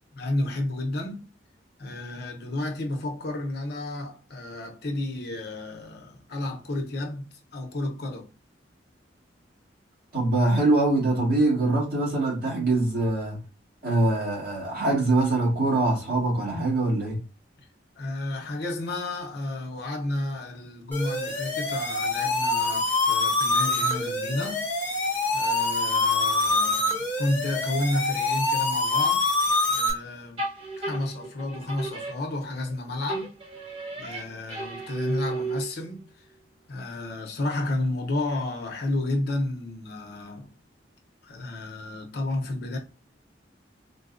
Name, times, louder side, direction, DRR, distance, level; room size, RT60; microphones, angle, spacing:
voice 1, 0.1-1.2 1.8-8.3 18.0-24.6 25.3-29.4 29.7-30.4 30.8-33.3 33.9-36.0 36.7-40.5 41.2-42.8, left 2 dB, 60° left, 0.7 m, -31 dB
voice 2, 10.1-13.4 13.8-17.2, right 2 dB, 55° right, 1.7 m, -23 dB
sound 1, 20.9-29.9, left 2 dB, 10° left, 0.9 m, -25 dB
sound 2, 30.4-32.7 33.1-35.9, right 3 dB, 30° right, 0.8 m, -34 dB
3.9 x 2.3 x 2.5 m
head